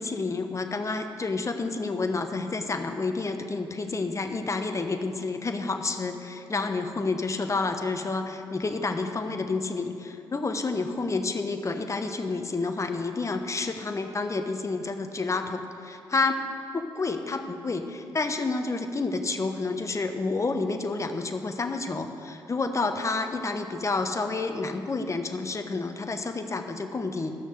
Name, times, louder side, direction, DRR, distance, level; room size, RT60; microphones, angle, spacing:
voice 1, 0.0-16.4 16.7-27.4, left 3 dB, 30° left, 6 dB, 1.0 m, -29 dB
13.0 x 6.4 x 6.7 m, 2.6 s
hypercardioid pair, 45°, 10 cm